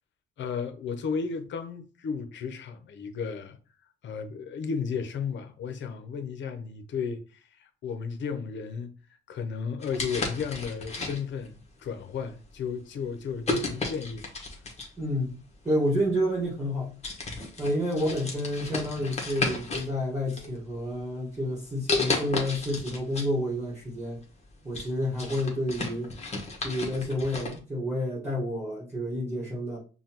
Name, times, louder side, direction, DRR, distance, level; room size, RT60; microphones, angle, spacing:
voice 1, 0.4-3.6 4.0-14.3, left 6 dB, 65° left, 0.7 m, -34 dB
sound 1, 9.8-11.5 12.2-12.4 13.4-15.0 16.1-16.2 16.6-16.8 17.0-19.9 20.3-21.0 21.9-23.3 23.7-23.8 24.3-27.6, left 3 dB, 35° left, 1.2 m, -33 dB
voice 2, 15.0-15.4 15.6-17.0 17.6-24.2 24.6-26.1 26.6-29.8, equal, 15° right, 1.4 m, -29 dB
5.5 x 2.3 x 2.9 m
cardioid pair, 90°, 20 cm